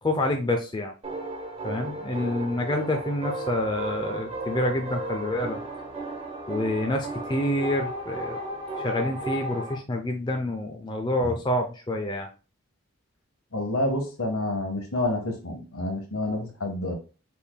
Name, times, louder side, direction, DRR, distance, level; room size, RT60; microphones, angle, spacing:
voice 1, 0.0-0.9 1.6-5.6 6.5-8.4 8.8-12.3, left 1 dB, 20° left, 3 dB, 0.5 m, -27 dB
sound 1, 1.0-9.8, right 2 dB, 25° right, 1.0 m, -34 dB
voice 2, 13.5-16.9, left 1 dB, 70° left, 4 dB, 1.4 m, -28 dB
5.2 x 4.4 x 2.2 m, 0.34 s
head